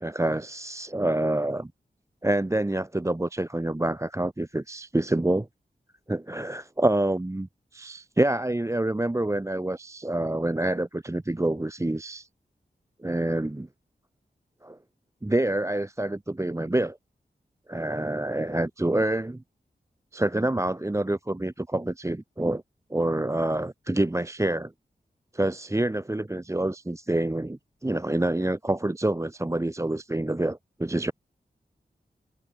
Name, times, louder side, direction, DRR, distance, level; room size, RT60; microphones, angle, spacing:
voice 1, 0.0-1.7 2.2-5.5 6.1-12.3 13.0-13.7 14.6-14.8 15.2-17.0 17.7-19.4 20.1-22.6 22.9-24.7 25.3-31.1, right 1 dB, 15° right, 0.9 m, -27 dB
cardioid pair, 45°, 17 cm